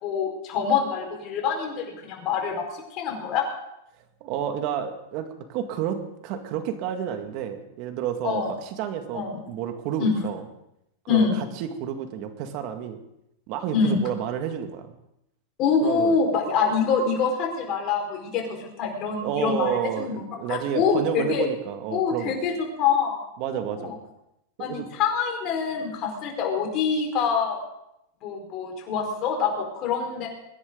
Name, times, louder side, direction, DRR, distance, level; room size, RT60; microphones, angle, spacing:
voice 1, 0.0-3.4 8.2-8.5 9.1-9.4 10.0-10.1 11.1-11.4 13.7-14.0 15.6-20.1 20.5-21.5 21.9-22.5 22.8-23.3 23.8-23.9 24.6-27.6 28.2-30.3, left 6 dB, 45° left, 2 dB, 5.0 m, -25 dB
voice 2, 4.2-10.4 11.1-13.0 13.5-14.9 15.8-16.2 19.2-22.4 23.4-24.0 24.6-24.9, right 9 dB, 50° right, 6 dB, 2.1 m, -30 dB
23.0 x 10.5 x 4.0 m, 0.82 s
hypercardioid pair, 125°, 0 cm